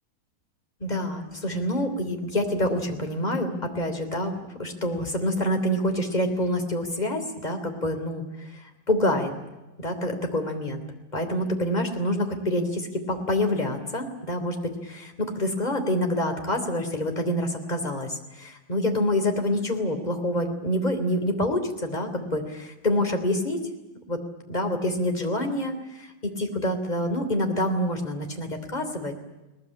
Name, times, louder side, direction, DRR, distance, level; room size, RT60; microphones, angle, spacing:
voice 1, 0.8-4.3 4.6-9.3 9.8-10.8 11.1-23.7 24.1-24.2 24.5-29.1, left 1 dB, 10° left, 4 dB, 2.9 m, -27 dB
22.5 x 19.5 x 9.9 m, 1.0 s
omnidirectional pair, 4.1 m